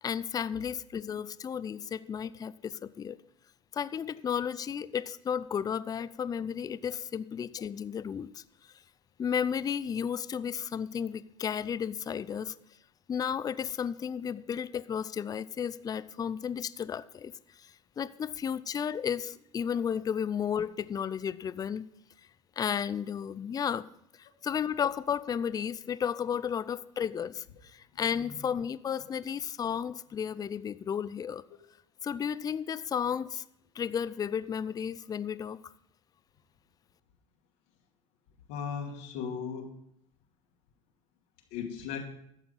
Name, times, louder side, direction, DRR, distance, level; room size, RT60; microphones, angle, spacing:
voice 1, 0.0-3.2 3.7-8.4 9.2-12.5 13.1-21.9 22.6-23.9 24.2-31.4 32.0-33.4 33.7-35.7, left 8 dB, 25° left, 16 dB, 0.5 m, -33 dB
voice 2, 38.5-39.7 41.5-42.0, left 7 dB, 65° left, 1 dB, 2.3 m, -36 dB
12.0 x 7.1 x 5.4 m, 0.75 s
hypercardioid pair, 75°, 16 cm